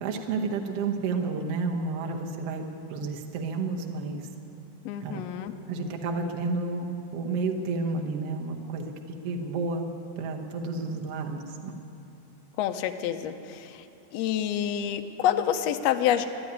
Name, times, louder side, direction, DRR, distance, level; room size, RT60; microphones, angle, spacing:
voice 1, 0.0-4.3 5.0-5.2 5.7-8.9 9.2-9.9 10.2-11.7, right 3 dB, 60° right, 1 dB, 1.8 m, -31 dB
voice 2, 4.8-5.5 12.6-13.9 14.1-16.2, left 10 dB, 80° left, 7 dB, 1.5 m, -27 dB
13.0 x 11.0 x 9.4 m, 2.7 s
omnidirectional pair, 3.6 m